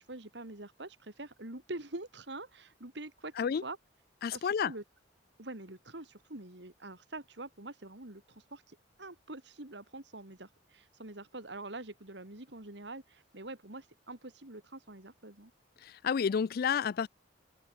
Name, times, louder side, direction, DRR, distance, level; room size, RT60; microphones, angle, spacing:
voice 1, 0.0-3.8 4.3-4.8 5.4-15.5, right 2 dB, 65° right, 3.0 m, -45 dB
voice 2, 4.2-4.7 15.8-17.1, left 7 dB, 55° left, 0.4 m, -30 dB
head